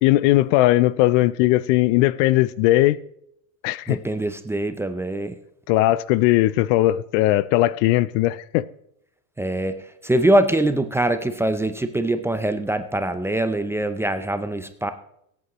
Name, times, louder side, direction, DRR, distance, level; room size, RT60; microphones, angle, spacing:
voice 1, 0.0-3.0 3.6-4.0 5.7-8.6, left 16 dB, 60° left, 0.5 m, -18 dB
voice 2, 3.9-5.4 9.4-14.9, right 1 dB, 5° right, 0.5 m, -23 dB
23.0 x 8.5 x 3.0 m
supercardioid pair, 125°, 43 cm